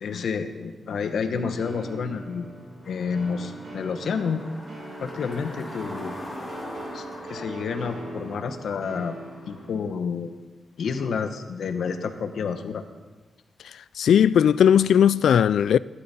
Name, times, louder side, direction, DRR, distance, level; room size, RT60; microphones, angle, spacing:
voice 1, 0.0-2.5 2.8-4.4 5.0-6.1 6.9-9.2 9.5-10.3 10.8-12.8, left 5 dB, 70° left, 1.1 m, -29 dB
sound 1, 1.6-9.8, right 2 dB, 60° right, 2.6 m, -41 dB
sound 2, 2.8-9.7, left 1 dB, 15° left, 3.2 m, -42 dB
voice 2, 14.0-15.8, left 9 dB, 85° left, 0.3 m, -17 dB
15.5 x 12.5 x 4.3 m
wide cardioid pair, 155°, 0 cm